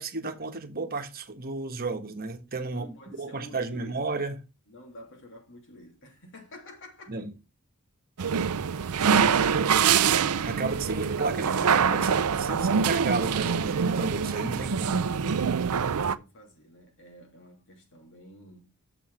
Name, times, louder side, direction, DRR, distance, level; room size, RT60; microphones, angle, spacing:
voice 1, 0.0-4.4 7.1-7.3 10.4-15.0, right 3 dB, 45° right, 1.3 m, -33 dB
voice 2, 2.6-4.1 4.7-7.2 8.3-8.6 15.6-18.7, left 1 dB, 60° left, 2.8 m, -50 dB
sound 1, 8.2-16.1, right 6 dB, 75° right, 0.5 m, -24 dB
6.9 x 6.3 x 4.8 m
head